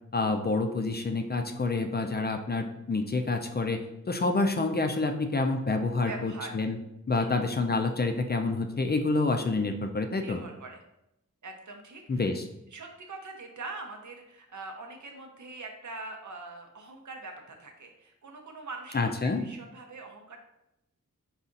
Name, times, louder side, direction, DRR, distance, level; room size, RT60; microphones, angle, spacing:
voice 1, 0.1-3.8 4.1-6.8 7.1-10.4 12.1-12.5 18.9-19.5, left 3 dB, 30° left, 5 dB, 0.4 m, -28 dB
voice 2, 6.0-6.5 7.1-7.3 10.2-10.8 11.4-12.3 12.7-20.4, right 3 dB, 65° right, 3 dB, 0.8 m, -43 dB
4.1 x 2.4 x 3.8 m, 0.86 s
wide cardioid pair, 60°, 32 cm